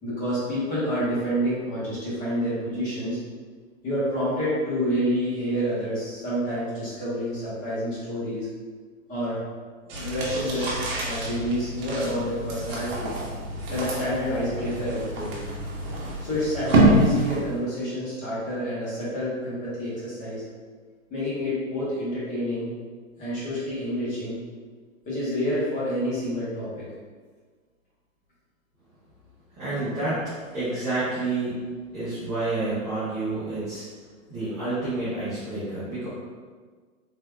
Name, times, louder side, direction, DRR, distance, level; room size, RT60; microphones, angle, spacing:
voice 1, 0.0-3.2 3.8-8.5 9.1-9.4 9.8-13.1 13.7-15.3 16.2-20.4 21.1-22.7 23.2-24.4 25.0-26.8, equal, 20° left, -8 dB, 1.0 m, -28 dB
sound 1, 9.9-17.6, right 1 dB, 40° right, 0.9 m, -26 dB
voice 2, 29.5-31.7 31.9-33.8 34.3-36.1, right 2 dB, 10° right, -15 dB, 0.4 m, -29 dB
3.5 x 2.7 x 2.2 m, 1.5 s
hypercardioid pair, 145°, 41 cm